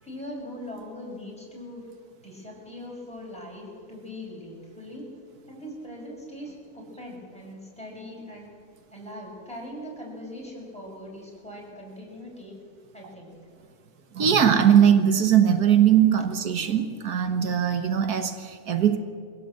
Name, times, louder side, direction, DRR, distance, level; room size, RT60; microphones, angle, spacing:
voice 1, 0.0-1.9 2.2-5.1 5.5-8.5 8.9-12.5 12.9-13.3, left 1 dB, 5° left, -3 dB, 6.2 m, -41 dB
voice 2, 14.1-19.0, right 9 dB, 85° right, 7 dB, 1.7 m, -20 dB
23.0 x 16.0 x 7.7 m, 2.1 s
omnidirectional pair, 1.6 m